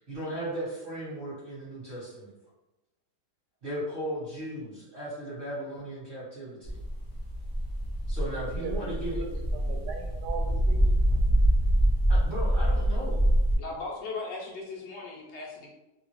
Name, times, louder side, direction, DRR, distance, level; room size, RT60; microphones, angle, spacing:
voice 1, 0.0-2.3 3.6-6.8 8.1-9.2 12.1-13.2, right 1 dB, 35° right, -10 dB, 1.1 m, -36 dB
sound 1, 6.6-13.6, right 1 dB, 30° left, 0.6 m, -25 dB
voice 2, 8.3-9.3 9.5-10.8, right 4 dB, 75° right, 2 dB, 1.1 m, -38 dB
voice 3, 13.6-15.7, left 3 dB, 55° left, -3 dB, 0.8 m, -37 dB
2.8 x 2.4 x 3.0 m, 1.0 s
omnidirectional pair, 1.8 m